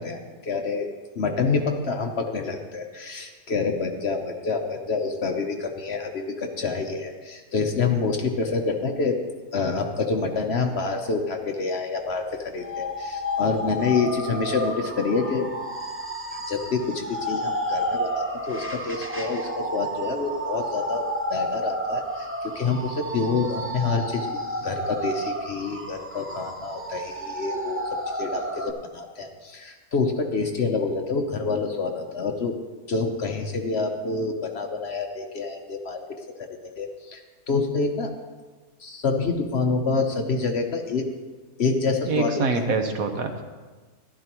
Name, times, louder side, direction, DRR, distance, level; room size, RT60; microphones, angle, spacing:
voice 1, 0.0-9.2 9.5-15.5 16.5-24.3 24.6-27.8 28.1-32.6 32.9-36.0 36.4-37.2 37.5-38.1 38.8-41.0 41.6-42.6, left 4 dB, 50° left, 4 dB, 0.9 m, -27 dB
sound 1, 12.6-28.7, equal, 20° right, 0.3 m, -31 dB
voice 2, 42.1-43.4, right 4 dB, 70° right, 5 dB, 1.4 m, -25 dB
14.5 x 12.0 x 3.0 m, 1.3 s
omnidirectional pair, 1.6 m